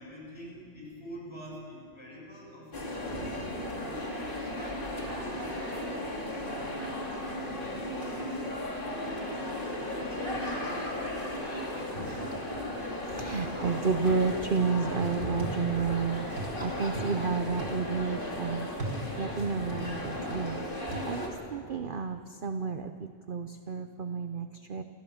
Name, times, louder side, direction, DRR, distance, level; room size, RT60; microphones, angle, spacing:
voice 1, 0.0-8.5 8.7-12.3, left 1 dB, 20° left, -4 dB, 7.6 m, -47 dB
sound 1, 2.7-21.3, left 1 dB, 40° left, 2.9 m, -35 dB
voice 2, 13.2-16.3 16.6-18.7 19.2-20.6 21.1-22.9 23.3-24.8, right 5 dB, 50° right, 8 dB, 0.8 m, -31 dB
sound 2, 14.1-14.6 15.0-15.9 16.4-17.1 17.6-17.7 18.8-20.5 20.9-21.0, right 2 dB, 70° right, 3.2 m, -39 dB
28.5 x 15.0 x 7.2 m, 2.2 s
omnidirectional pair, 1.3 m